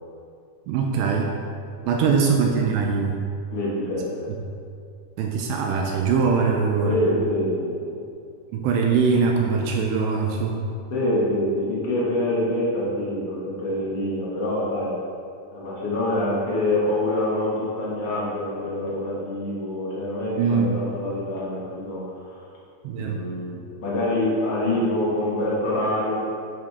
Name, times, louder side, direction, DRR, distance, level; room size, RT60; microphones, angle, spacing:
voice 1, 0.7-1.3 1.9-3.2 5.2-7.0 8.5-10.6 20.4-20.8 22.8-23.2, right 5 dB, 80° right, 1 dB, 2.6 m, -22 dB
voice 2, 3.5-4.3 6.8-8.0 10.9-14.9 15.5-22.5 22.9-26.1, left 1 dB, 45° left, -7 dB, 2.1 m, -26 dB
10.5 x 7.6 x 3.6 m, 2.3 s
omnidirectional pair, 5.4 m